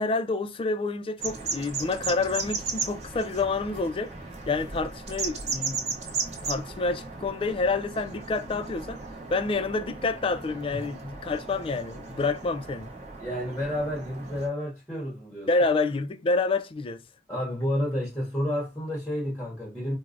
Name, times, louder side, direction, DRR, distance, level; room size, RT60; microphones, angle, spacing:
voice 1, 0.0-4.1 4.5-5.8 6.4-9.0 9.3-12.9 15.5-17.0, left 3 dB, 30° left, 0.3 m, -28 dB
sound 1, 1.2-14.5, right 4 dB, 40° right, 0.7 m, -36 dB
voice 2, 13.2-15.5 17.3-20.0, equal, 5° left, 0.8 m, -30 dB
4.4 x 2.0 x 2.4 m
head